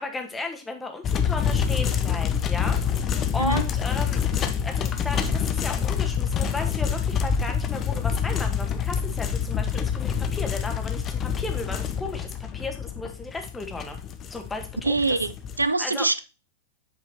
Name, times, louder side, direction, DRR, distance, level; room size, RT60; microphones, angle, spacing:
voice 1, 0.0-2.8 3.3-14.0 14.3-15.2 15.8-16.1, left 3 dB, 10° left, 1.6 m, -35 dB
sound 1, 1.0-15.6, left 7 dB, 25° left, 0.9 m, -26 dB
voice 2, 14.8-16.2, right 3 dB, 80° right, 0.4 m, -24 dB
8.2 x 5.1 x 4.3 m
figure-of-eight pair, 95°, 0 cm